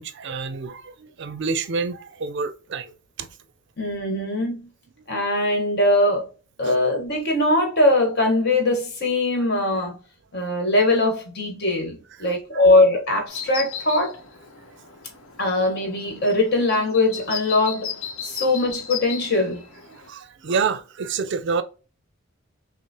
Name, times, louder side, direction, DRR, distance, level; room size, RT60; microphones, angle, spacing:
voice 1, 0.0-2.9 3.2-3.3 5.1-5.2 12.2-12.6 19.9-21.6, right 5 dB, 60° right, 0.5 m, -28 dB
voice 2, 3.8-4.7 5.1-6.3 6.6-10.0 10.3-14.2 15.4-19.6, left 2 dB, 55° left, 1.5 m, -21 dB
sound 1, 13.3-20.1, left 8 dB, 90° left, 0.8 m, -36 dB
5.8 x 2.0 x 2.8 m
head